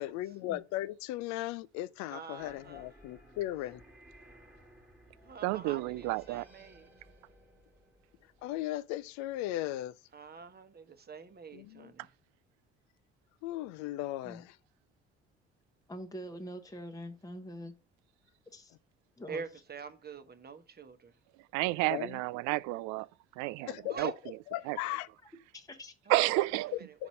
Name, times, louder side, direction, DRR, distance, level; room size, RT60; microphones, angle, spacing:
voice 1, 0.0-3.8 8.4-9.9 11.5-11.9 13.4-14.6 21.9-22.2 23.6-24.1 24.5-25.1 26.7-27.1, left 15 dB, 60° left, 0.5 m, -37 dB
voice 2, 2.1-2.9 5.2-6.9 10.1-12.1 19.3-21.1 23.9-24.1 26.1-27.1, right 6 dB, 30° right, 1.0 m, -45 dB
sound 1, 2.4-9.2, equal, 5° right, 1.5 m, -58 dB
voice 3, 5.4-6.4 21.5-23.1 23.4-24.1 24.7-24.8 26.1-26.7, right 19 dB, 60° right, 0.4 m, -31 dB
voice 4, 15.9-17.7 18.5-18.7 19.2-19.4 25.5-25.9, equal, 10° left, 1.0 m, -44 dB
5.9 x 4.1 x 5.2 m
hypercardioid pair, 50°, 32 cm